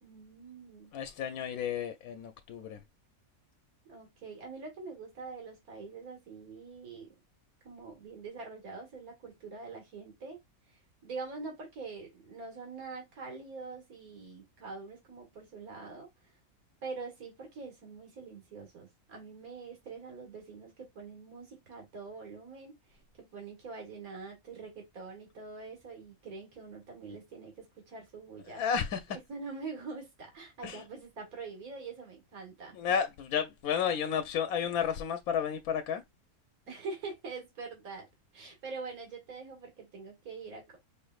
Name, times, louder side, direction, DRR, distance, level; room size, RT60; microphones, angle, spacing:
voice 1, 0.0-1.0 3.9-7.1 7.6-10.4 10.7-16.4 16.8-28.6 29.1-33.0 36.7-38.1 38.3-40.8, right 4 dB, 75° right, 2.2 m, -44 dB
voice 2, 0.9-2.8 28.5-29.2 30.6-30.8 32.7-36.0, left 7 dB, 80° left, 1.0 m, -32 dB
4.9 x 3.2 x 2.3 m
omnidirectional pair, 1.5 m